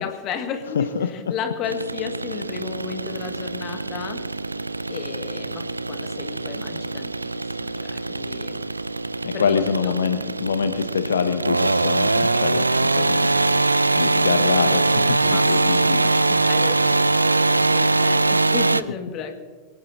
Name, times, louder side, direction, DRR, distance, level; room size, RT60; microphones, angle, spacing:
voice 1, 0.0-4.2 4.9-8.6 9.3-9.6 9.8-9.9 15.2-15.5 15.8-19.4, left 7 dB, 35° left, 6 dB, 1.9 m, -34 dB
voice 2, 0.8-1.1 9.2-13.4 13.9-16.1, left 6 dB, 70° left, 9 dB, 0.7 m, -25 dB
sound 1, 1.7-18.8, right 2 dB, 80° right, 0.4 m, -22 dB
24.0 x 18.5 x 2.8 m, 1.5 s
figure-of-eight pair, 90°, 0 cm